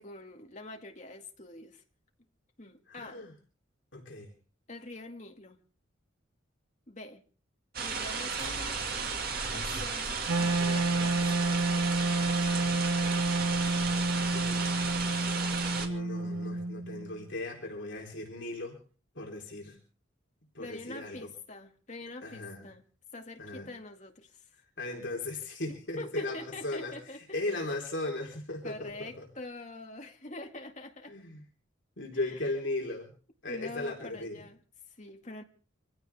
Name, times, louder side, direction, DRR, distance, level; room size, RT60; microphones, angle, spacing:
voice 1, 0.0-1.8 2.6-3.2 4.7-5.6 6.9-7.2 7.8-8.9 9.5-11.6 20.6-22.8 23.1-24.4 26.0-27.4 28.6-31.1 32.1-32.5 33.5-34.6 35.0-35.4, left 2 dB, 35° left, 2.0 m, -45 dB
voice 2, 2.9-3.3 3.9-4.3 14.3-14.8 15.8-18.8 19.2-19.8 20.5-21.2 22.2-22.6 23.4-23.7 24.8-26.9 27.3-29.2 31.1-31.4 32.0-33.1 33.4-34.4, left 2 dB, 60° left, 3.9 m, -37 dB
sound 1, 7.7-15.9, right 5 dB, 45° right, 2.3 m, -34 dB
sound 2, 8.4-10.6, right 2 dB, 65° right, 7.3 m, -48 dB
Wind instrument woodwind instrument, 10.3-17.2, right 2 dB, 90° right, 1.1 m, -29 dB
25.5 x 16.0 x 3.5 m
head